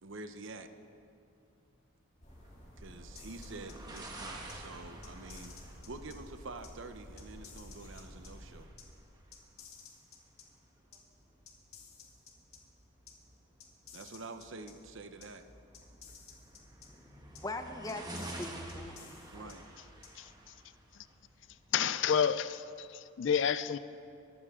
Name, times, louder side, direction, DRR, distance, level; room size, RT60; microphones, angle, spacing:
voice 1, 0.0-0.7 2.8-8.7 13.9-15.4 19.3-19.7, right 3 dB, 65° right, 0.8 m, -47 dB
sound 1, 2.2-8.7, equal, 35° left, 2.4 m, -51 dB
sound 2, 2.3-22.0, right 1 dB, 20° right, 1.2 m, -51 dB
sound 3, 3.1-4.0 4.5-4.6 5.0-6.2 6.6-6.7 7.2-8.3 8.8-8.9 9.3-10.4 10.9-11.0 11.5-12.6 13.1-13.2 13.6-14.7 15.2-15.3 15.7-16.9 17.3-17.4 17.9-19.5 20.0-20.1, left 7 dB, 90° left, 1.8 m, -53 dB
voice 2, 16.9-19.5, left 2 dB, 15° left, 0.7 m, -43 dB
voice 3, 21.7-23.8, left 8 dB, 60° left, 0.4 m, -30 dB
21.5 x 13.5 x 3.7 m
head